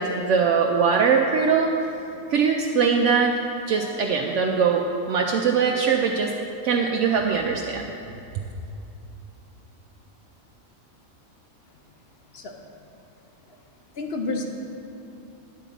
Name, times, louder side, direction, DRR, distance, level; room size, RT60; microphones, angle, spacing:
voice 1, 0.0-1.7 2.3-3.3 3.7-4.8 5.1-6.3 6.6-7.8, right 6 dB, 70° right, 1 dB, 0.8 m, -21 dB
voice 2, 14.0-14.4, left 3 dB, 55° left, 3 dB, 0.8 m, -29 dB
9.9 x 4.0 x 7.1 m, 2.6 s
omnidirectional pair, 1.4 m